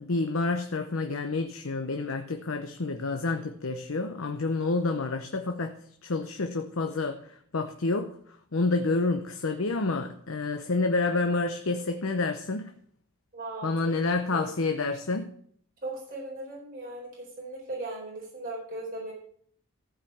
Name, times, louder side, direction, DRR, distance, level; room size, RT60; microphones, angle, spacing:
voice 1, 0.0-5.7 6.0-7.2 7.5-8.1 8.5-12.7 13.6-15.3, left 3 dB, 70° left, 5 dB, 0.8 m, -28 dB
voice 2, 13.3-13.7 14.3-14.5 15.8-19.1, right 2 dB, 40° right, -4 dB, 4.3 m, -38 dB
14.5 x 5.0 x 7.2 m, 0.62 s
head